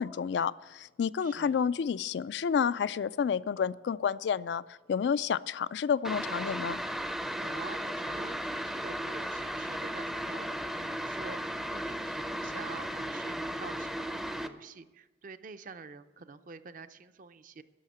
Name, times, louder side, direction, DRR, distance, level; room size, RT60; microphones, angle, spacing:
voice 1, 0.0-6.8, left 7 dB, 65° left, 17 dB, 0.3 m, -30 dB
voice 2, 1.2-1.6 7.4-17.6, right 4 dB, 45° right, 11 dB, 0.5 m, -47 dB
sound 1, 6.0-14.5, equal, ahead, 0.5 m, -35 dB
11.5 x 6.5 x 9.1 m, 1.1 s
head